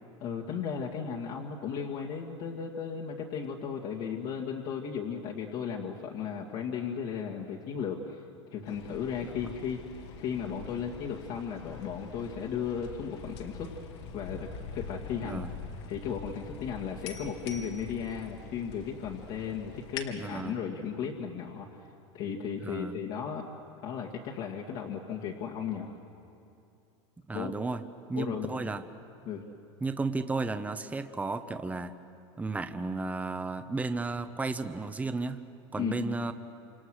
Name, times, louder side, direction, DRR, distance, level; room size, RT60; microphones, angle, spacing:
voice 1, 0.2-8.2 8.5-9.8 10.2-13.8 14.1-15.5 15.9-21.9 22.1-23.5 23.8-26.0 27.3-27.5 28.1-28.5 29.2-29.4 35.8-36.2, left 7 dB, 55° left, -1 dB, 2.3 m, -35 dB
sound 1, 8.6-20.0, left 5 dB, 75° left, 2.9 m, -44 dB
voice 2, 20.2-20.6 22.6-23.0 27.3-27.8 28.1-28.9 29.8-31.9 32.4-35.4 35.7-36.3, right 3 dB, 10° right, 9 dB, 1.0 m, -33 dB
27.5 x 27.5 x 6.5 m, 2.6 s
hypercardioid pair, 110°, 15 cm